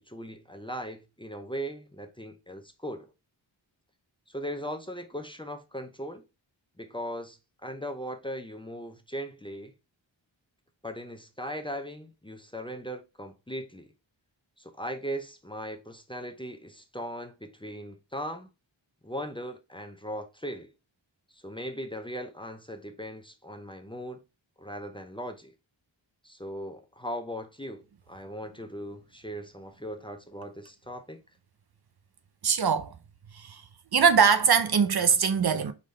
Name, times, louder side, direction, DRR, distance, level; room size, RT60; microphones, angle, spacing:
voice 1, 0.0-3.1 4.3-6.2 6.8-9.7 10.8-13.9 14.6-18.5 19.0-20.7 21.3-24.2 24.6-25.5 26.2-31.2, equal, 10° left, 0.6 m, -38 dB
voice 2, 32.4-32.9 33.3-33.6 33.9-35.7, right 6 dB, 55° right, 0.6 m, -22 dB
4.0 x 3.1 x 3.0 m
cardioid pair, 45°, 46 cm